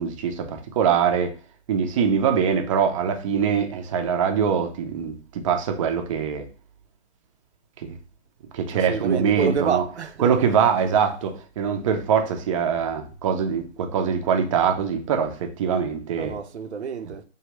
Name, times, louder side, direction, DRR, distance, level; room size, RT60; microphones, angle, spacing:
voice 1, 0.0-1.3 1.7-6.5 7.8-8.0 8.5-9.8 10.2-16.4, right 7 dB, 30° right, 0.6 m, -23 dB
voice 2, 8.7-10.3 16.2-17.2, right 6 dB, 75° right, 0.7 m, -29 dB
4.9 x 2.8 x 3.1 m
figure-of-eight pair, 135°, 34 cm